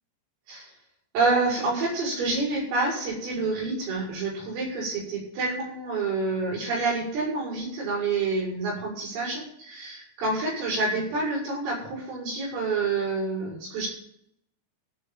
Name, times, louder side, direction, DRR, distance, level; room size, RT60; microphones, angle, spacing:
voice 1, 1.1-13.9, right 3 dB, 85° right, -4 dB, 9.4 m, -28 dB
16.0 x 5.8 x 9.1 m, 0.72 s
omnidirectional pair, 5.8 m